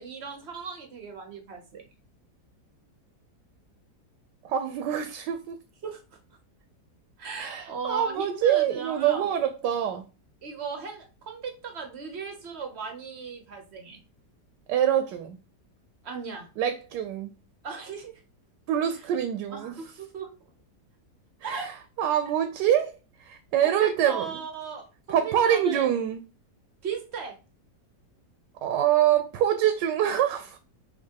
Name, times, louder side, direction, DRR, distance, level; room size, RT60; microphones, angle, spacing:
voice 1, 0.0-1.9 5.8-6.0 7.2-9.3 10.4-14.0 16.0-16.5 17.6-18.2 19.0-19.1 19.5-20.3 21.4-21.7 23.6-26.0 26.8-27.4, right 5 dB, 55° right, 0.7 m, -37 dB
voice 2, 4.4-5.6 7.4-10.0 14.7-15.4 16.6-17.3 18.7-19.7 21.4-24.4 25.1-26.2 28.6-30.6, right 10 dB, 80° right, 1.2 m, -25 dB
5.9 x 2.9 x 2.8 m
omnidirectional pair, 1.8 m